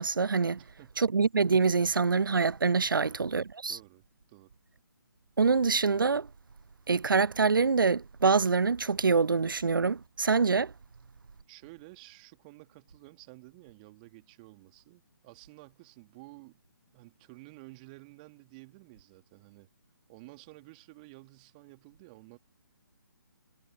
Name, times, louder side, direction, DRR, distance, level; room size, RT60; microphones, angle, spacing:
voice 1, 0.0-0.6 1.0-3.8 5.4-6.3 6.9-10.7, right 4 dB, 65° right, 0.6 m, -25 dB
voice 2, 0.6-0.9 2.9-3.2 3.6-4.6 11.5-16.6 16.9-19.7 20.1-22.4, right 25 dB, 25° right, 3.0 m, -52 dB
figure-of-eight pair, 140°, 12 cm